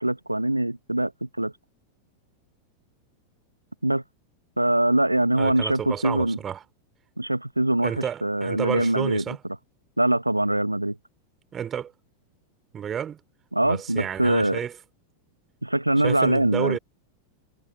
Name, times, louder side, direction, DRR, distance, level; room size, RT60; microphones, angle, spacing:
voice 1, 0.0-1.5 3.8-4.0 4.6-6.4 7.2-9.2 10.0-11.0 13.5-14.6 15.6-16.8, right 1 dB, 85° right, 0.8 m, -23 dB
voice 2, 5.3-6.6 7.8-9.4 11.5-11.9 12.7-13.2 13.6-14.7 16.0-16.8, right 8 dB, 25° right, 2.9 m, -31 dB
figure-of-eight pair, 90°, 0 cm